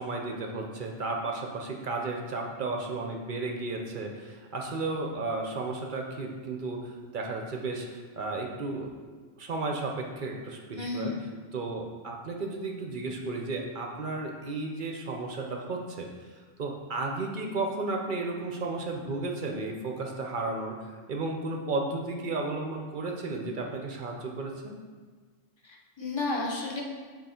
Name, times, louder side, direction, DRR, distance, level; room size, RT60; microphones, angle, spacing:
voice 1, 0.0-8.9 9.4-11.1 11.5-16.1 16.4-24.7, right 3 dB, 50° right, 1 dB, 0.7 m, -33 dB
voice 2, 10.7-11.2 25.6-26.8, left 3 dB, 25° left, -1 dB, 0.8 m, -32 dB
7.8 x 3.0 x 4.3 m, 1.5 s
omnidirectional pair, 1.3 m